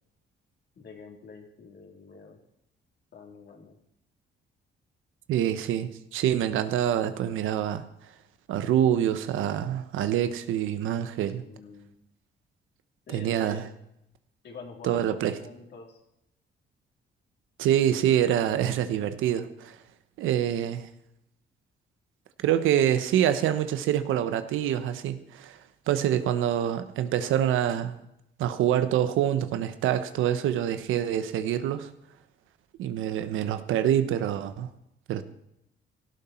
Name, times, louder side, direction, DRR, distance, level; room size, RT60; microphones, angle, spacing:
voice 1, 0.8-2.4 3.1-3.8 11.2-12.0 13.1-13.6 14.4-16.0, left 4 dB, 60° left, 1 dB, 3.7 m, -46 dB
voice 2, 5.3-7.8 8.5-11.4 13.1-13.7 14.8-15.4 17.6-19.8 20.2-20.9 22.4-25.6 25.9-28.0 28.4-31.9 32.8-34.7 35.1-35.2, right 10 dB, 90° right, 11 dB, 1.1 m, -26 dB
17.5 x 12.5 x 4.5 m, 0.80 s
cardioid pair, 90°, 20 cm